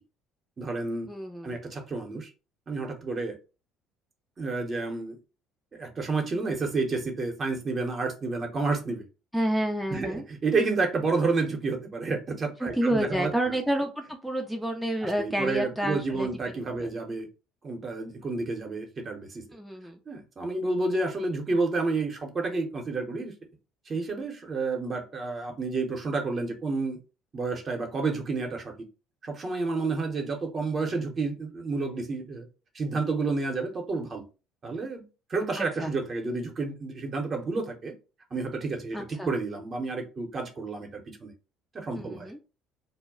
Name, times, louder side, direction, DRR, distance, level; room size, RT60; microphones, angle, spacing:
voice 1, 0.6-1.1 1.4-2.3 2.7-3.4 4.4-5.2 5.7-9.0 9.9-13.3 15.0-17.3 17.6-19.5 20.1-23.3 23.9-27.0 27.3-28.7 29.2-32.5 32.7-34.2 34.6-37.9 38.3-41.3 41.7-42.3, right 3 dB, 40° right, 0.8 m, -30 dB
voice 2, 1.1-1.6 9.3-10.2 12.6-16.3 16.8-16.9 19.5-20.0 35.6-35.9 38.9-39.3 41.9-42.4, right 1 dB, ahead, 0.5 m, -29 dB
2.2 x 2.1 x 3.6 m
hypercardioid pair, 65°, 0 cm